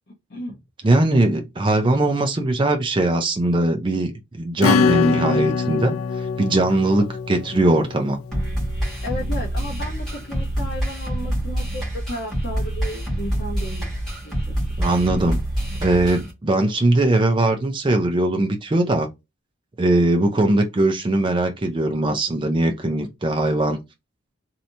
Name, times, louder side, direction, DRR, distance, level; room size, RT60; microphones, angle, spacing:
voice 1, 0.8-8.2 14.8-15.4 15.8-19.1 19.8-23.8, right 2 dB, 25° right, 0.4 m, -20 dB
Acoustic guitar / Strum, 4.6-8.9, left 5 dB, 85° left, 0.3 m, -23 dB
sound 1, 8.3-16.3, equal, ahead, 1.8 m, -26 dB
voice 2, 9.0-14.6, equal, 50° left, 0.8 m, -34 dB
3.2 x 2.8 x 2.7 m
head